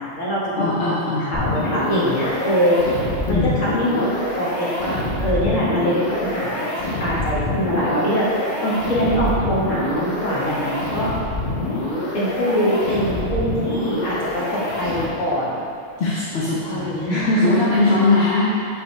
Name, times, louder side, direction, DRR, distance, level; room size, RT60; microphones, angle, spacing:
voice 1, 0.0-2.8 3.3-4.1 4.4-6.6 7.0-11.1 12.1-15.6 16.7-17.6 17.9-18.0 18.2-18.3, equal, 75° left, -8 dB, 1.8 m, -23 dB
voice 2, 0.6-1.4 3.3-3.6 16.0-17.1 17.4-18.6, left 3 dB, 60° left, -7 dB, 1.0 m, -21 dB
sound 1, 1.3-15.4, left 1 dB, 40° left, 1.0 m, -26 dB
6.0 x 5.0 x 3.2 m, 2.5 s
omnidirectional pair, 1.3 m